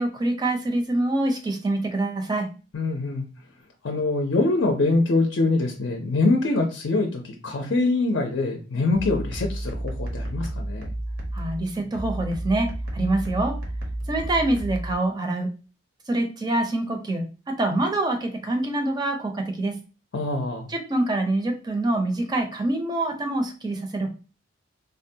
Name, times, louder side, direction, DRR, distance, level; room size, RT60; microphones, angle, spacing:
voice 1, 0.0-2.5 11.3-13.6 14.1-15.5 16.1-19.7 20.7-24.1, right 2 dB, 20° right, 4 dB, 0.5 m, -25 dB
voice 2, 2.7-3.3 3.8-10.9 20.1-20.7, left 2 dB, 70° left, 2 dB, 0.5 m, -24 dB
sound 1, 8.9-14.9, right 1 dB, 80° right, 0.9 m, -31 dB
3.6 x 2.1 x 2.6 m, 0.35 s
head